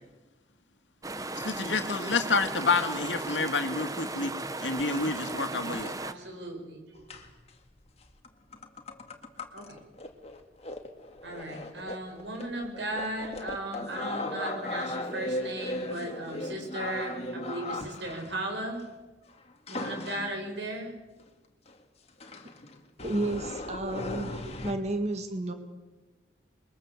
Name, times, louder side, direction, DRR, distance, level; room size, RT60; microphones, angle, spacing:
sound 1, 1.0-6.1, right 2 dB, 20° right, 0.9 m, -36 dB
voice 1, 1.4-4.3 4.6-5.9, left 4 dB, 80° left, 7 dB, 2.2 m, -29 dB
voice 2, 5.5-7.1 9.5-9.8 11.2-18.9 19.7-21.0, right 1 dB, 70° right, 2 dB, 7.2 m, -37 dB
sound 2, 7.1-7.5 8.0-8.3 8.5-18.7 19.7-20.5 21.2-21.3 21.7-21.8 22.2-24.7, left 1 dB, 35° left, 2.1 m, -37 dB
voice 3, 23.0-25.5, right 2 dB, 35° right, 6 dB, 2.1 m, -32 dB
28.0 x 22.5 x 7.6 m, 1.2 s
head